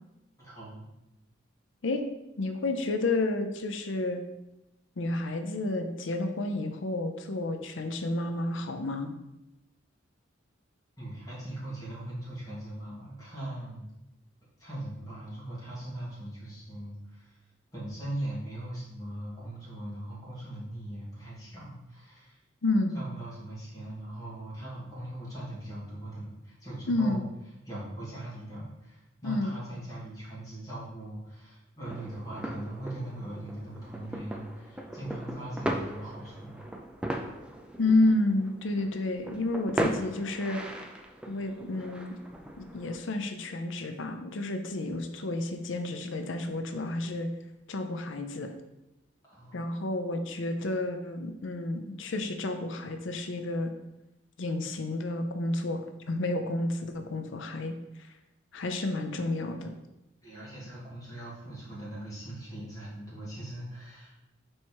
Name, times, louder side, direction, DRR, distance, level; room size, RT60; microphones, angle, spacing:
voice 1, 0.4-0.8 11.0-13.9 14.6-17.4 17.7-22.4 22.9-27.2 27.6-36.6 49.3-49.6 60.2-64.2, right 1 dB, 20° left, -8 dB, 2.2 m, -40 dB
voice 2, 2.4-4.2 5.0-9.1 22.6-22.9 26.9-27.2 29.2-29.6 37.8-40.6 41.3-42.2 42.6-47.3 47.7-48.5 49.5-53.7 54.4-58.1 58.5-59.8, left 2 dB, 70° left, 6 dB, 0.6 m, -30 dB
sound 1, 31.8-43.0, right 1 dB, 5° right, 0.4 m, -38 dB
4.8 x 4.3 x 4.5 m, 0.94 s
head